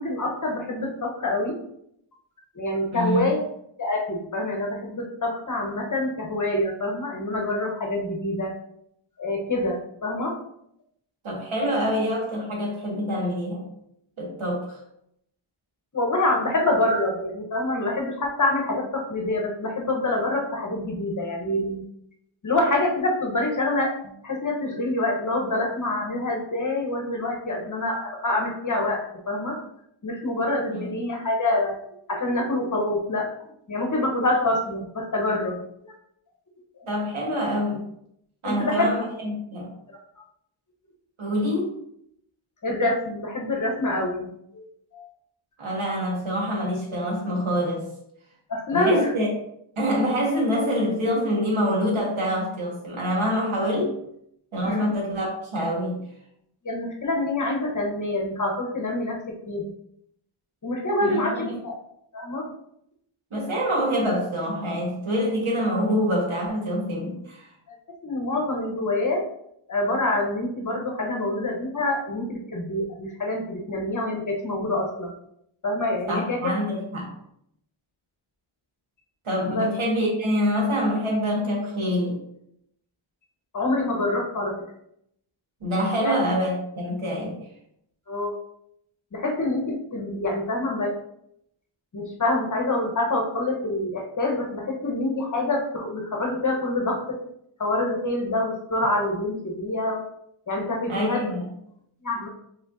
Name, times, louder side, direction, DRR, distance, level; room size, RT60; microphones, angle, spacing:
voice 1, 0.0-1.6 2.5-3.5 3.8-8.5 9.2-10.4 15.9-21.8 22.4-24.0 24.2-29.6 30.0-31.7 32.1-33.3 33.7-35.9 38.4-38.9 42.6-44.7 44.9-45.1 48.5-49.1 54.6-54.9 56.6-59.2 59.5-59.7 60.6-61.4 61.6-61.8 62.1-62.5 68.0-69.2 69.7-75.1 75.6-76.4 79.5-79.7 83.5-84.5 86.0-86.1 88.1-88.4 89.1-90.9 91.9-97.0 97.6-100.0 100.5-101.3 102.0-102.3, left 2 dB, 35° left, 0 dB, 1.0 m, -26 dB
voice 2, 2.9-3.3 11.2-13.7 14.2-14.8 30.7-30.9 36.9-37.9 38.4-39.7 41.2-41.7 45.6-47.9 48.7-49.3 49.8-54.0 54.5-56.0 61.0-61.6 63.3-67.5 76.1-77.1 79.2-82.2 85.6-87.3 100.9-101.5, equal, 70° right, -2 dB, 1.8 m, -26 dB
5.0 x 3.8 x 2.6 m, 0.74 s
wide cardioid pair, 100°, 50 cm